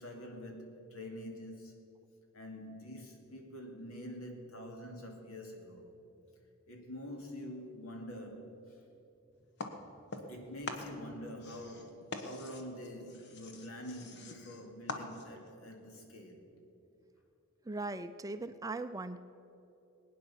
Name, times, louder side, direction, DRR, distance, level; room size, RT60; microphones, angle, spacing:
voice 1, 0.0-1.8 2.3-5.9 6.7-8.8 10.3-16.5, left 1 dB, 75° left, 2.6 m, -46 dB
sound 1, 9.6-10.4 10.6-15.5, left 3 dB, 55° left, 1.3 m, -44 dB
voice 2, 17.7-19.2, right 2 dB, 15° right, 0.4 m, -39 dB
20.5 x 9.5 x 7.2 m
head